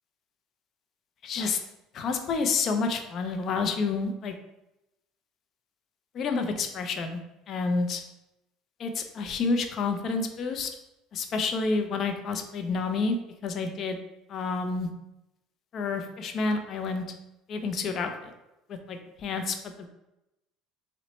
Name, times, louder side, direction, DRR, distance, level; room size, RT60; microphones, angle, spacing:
voice 1, 1.2-1.6 1.9-4.3 6.1-7.2 7.5-8.0 8.8-10.7 11.1-13.2 13.4-14.0 14.3-14.9 15.7-17.0 17.5-18.3 18.7-19.9, left 4 dB, 50° left, 5 dB, 0.4 m, -29 dB
4.0 x 2.1 x 2.9 m, 0.93 s
supercardioid pair, 95°, 0 cm